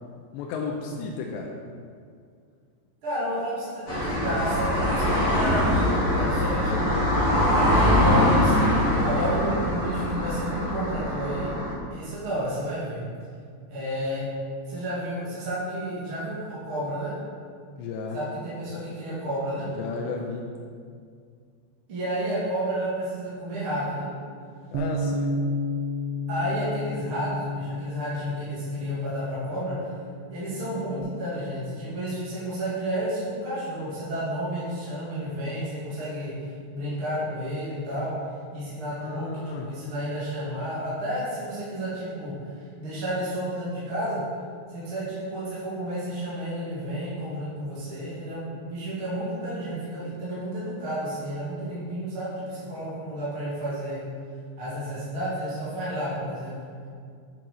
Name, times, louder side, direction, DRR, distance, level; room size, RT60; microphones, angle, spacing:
voice 1, 0.3-1.6 17.8-18.2 19.8-20.5 24.7-25.3 39.0-39.8, left 4 dB, 85° left, 0 dB, 2.8 m, -33 dB
voice 2, 3.0-7.0 7.6-8.7 9.0-11.5 11.9-13.0 13.7-14.3 14.7-17.1 18.1-19.7 21.9-24.1 26.3-29.9 30.3-36.3 36.7-38.1 38.5-44.2 44.7-54.0 54.6-56.6, right 1 dB, 35° right, -10 dB, 2.6 m, -31 dB
sound 1, 3.9-11.7, left 1 dB, 35° left, 2.7 m, -23 dB
Bass guitar, 24.7-31.0, left 2 dB, 85° right, 3.3 m, -32 dB
10.0 x 6.8 x 5.1 m, 2.2 s
omnidirectional pair, 5.2 m